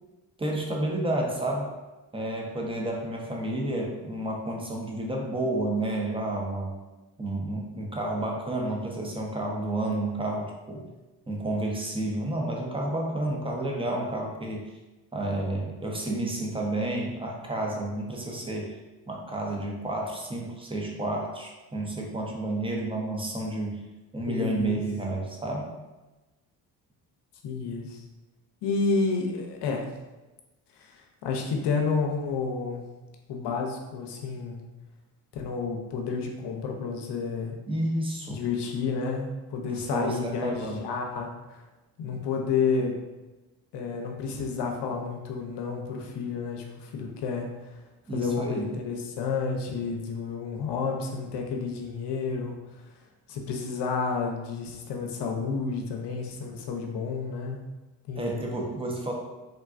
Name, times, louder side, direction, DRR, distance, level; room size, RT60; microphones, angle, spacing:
voice 1, 0.4-1.7 2.1-6.7 7.2-10.9 11.3-14.7 15.1-18.8 19.1-23.8 24.1-25.7 37.7-38.4 39.6-40.9 48.1-48.8 58.1-59.1, right 1 dB, 10° right, 0 dB, 0.7 m, -30 dB
voice 2, 24.3-24.8 27.4-28.0 28.6-29.9 30.8-32.8 33.3-34.6 35.3-37.5 38.3-41.6 42.0-43.0 43.7-47.5 48.1-52.6 53.3-57.6 58.1-58.4, left 5 dB, 65° left, 2 dB, 0.7 m, -30 dB
3.7 x 2.2 x 2.5 m, 1.1 s
supercardioid pair, 55°, 44 cm